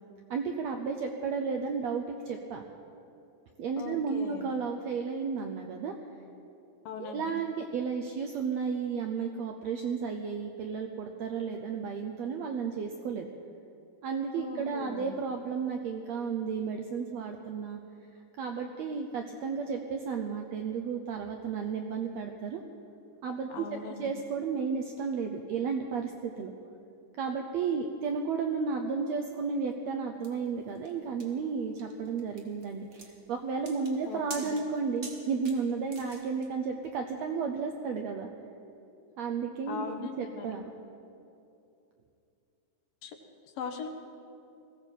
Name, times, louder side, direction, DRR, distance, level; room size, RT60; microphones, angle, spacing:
voice 1, 0.3-2.6 3.6-5.9 7.0-13.3 14.0-17.8 18.4-22.6 23.2-23.6 24.0-26.5 27.2-38.3 39.2-40.6, right 5 dB, 75° right, 4 dB, 1.6 m, -33 dB
voice 2, 3.8-4.4 6.9-7.3 14.3-15.1 23.5-24.1 34.1-34.6 39.7-40.5 43.0-43.2 43.4-43.9, left 5 dB, 85° left, 5 dB, 3.0 m, -40 dB
sound 1, 30.2-36.5, right 2 dB, 35° right, 1.2 m, -47 dB
20.0 x 16.5 x 4.5 m, 2.7 s
omnidirectional pair, 3.9 m